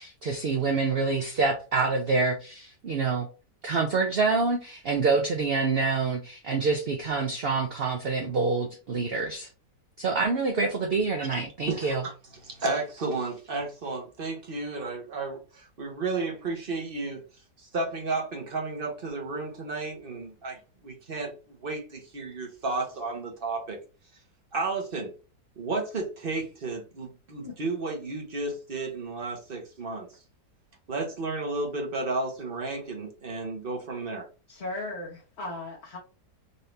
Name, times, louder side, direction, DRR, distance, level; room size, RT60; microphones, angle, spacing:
voice 1, 0.0-3.3 3.6-9.5 10.0-12.0, right 4 dB, 65° right, 0.5 m, -26 dB
voice 2, 11.7-12.1 12.4-17.2 17.6-23.8 24.5-25.1 25.6-30.1 30.9-34.3, right 3 dB, 35° right, 1.1 m, -32 dB
voice 3, 34.5-36.0, left 2 dB, 45° left, 1.2 m, -36 dB
4.1 x 2.7 x 3.2 m
omnidirectional pair, 1.8 m